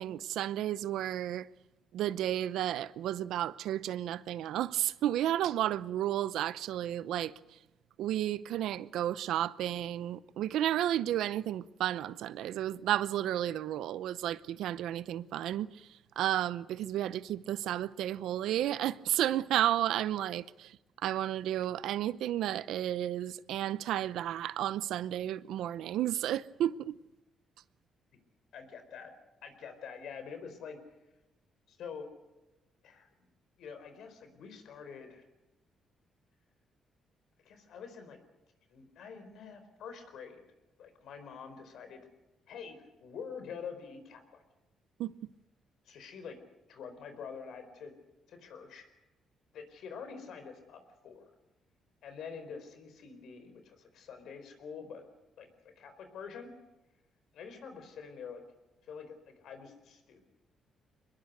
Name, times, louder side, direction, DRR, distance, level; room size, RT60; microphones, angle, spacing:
voice 1, 0.0-1.5 1.9-7.3 8.0-27.0 45.0-45.2, right 12 dB, 85° right, 0.7 m, -32 dB
voice 2, 28.5-29.1 29.4-30.8 31.7-32.1 32.8-33.3 33.6-35.2 37.4-38.2 38.7-40.4 40.8-42.1 42.5-44.4 45.8-46.4 46.7-47.9 48.3-48.9 49.5-51.3 52.0-55.0 55.4-55.5 55.8-56.5 57.3-58.4 58.8-60.2, left 6 dB, 75° left, 4.3 m, -46 dB
23.5 x 21.5 x 6.7 m
cardioid pair, 90°, 0 cm